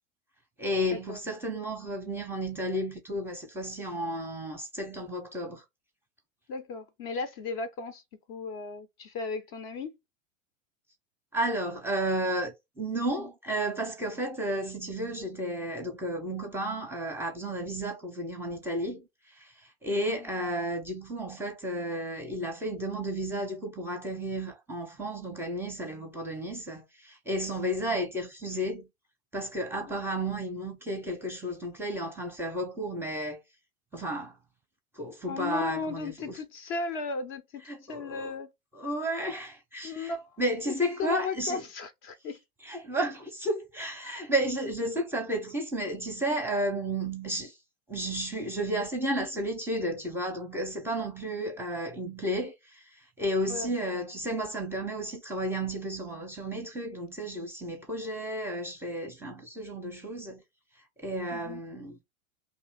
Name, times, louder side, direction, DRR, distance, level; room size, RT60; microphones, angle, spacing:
voice 1, 0.6-5.6 11.3-19.0 19.3-19.5 19.8-28.9 29.3-33.4 33.9-34.4 35.0-36.4 37.7-38.3 38.7-40.1 40.4-41.6 42.6-47.5 47.9-60.4 61.0-62.0, right 1 dB, 5° right, 0.7 m, -32 dB
voice 2, 6.5-8.0 8.3-9.9 29.9-30.0 35.3-37.6 37.9-38.5 39.8-40.4 40.7-42.4 53.5-53.7 61.3-61.6, left 4 dB, 35° left, 0.6 m, -35 dB
2.8 x 2.7 x 4.0 m
figure-of-eight pair, 90°, 41 cm